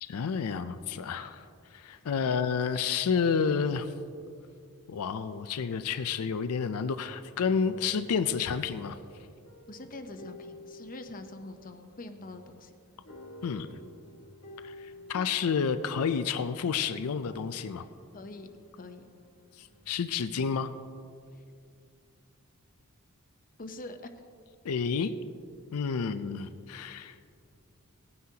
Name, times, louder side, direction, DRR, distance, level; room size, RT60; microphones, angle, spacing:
voice 1, 0.0-1.5 1.7-3.9 4.9-9.0 13.4-13.8 14.6-17.8 19.6-20.7 24.6-25.1 25.7-27.2, left 6 dB, 70° left, 10 dB, 0.4 m, -30 dB
sound 1, 7.4-20.0, left 1 dB, 85° left, 1.7 m, -51 dB
voice 2, 9.7-12.7 17.8-17.9 18.1-18.5 18.8-19.0 23.6-24.0, left 2 dB, 40° left, 7 dB, 0.8 m, -44 dB
18.5 x 9.5 x 2.8 m, 2.4 s
head